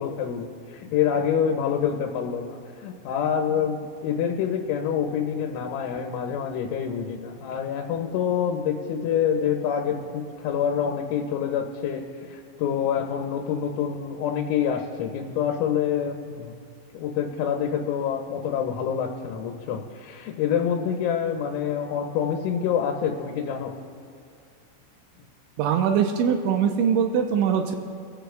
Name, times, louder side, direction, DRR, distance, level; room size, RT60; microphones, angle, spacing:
voice 1, 0.0-16.6 16.9-23.7, left 8 dB, 90° left, 2 dB, 3.3 m, -27 dB
voice 2, 25.6-27.8, right 7 dB, 85° right, 4 dB, 3.0 m, -22 dB
25.5 x 15.0 x 2.3 m, 2.5 s
omnidirectional pair, 5.5 m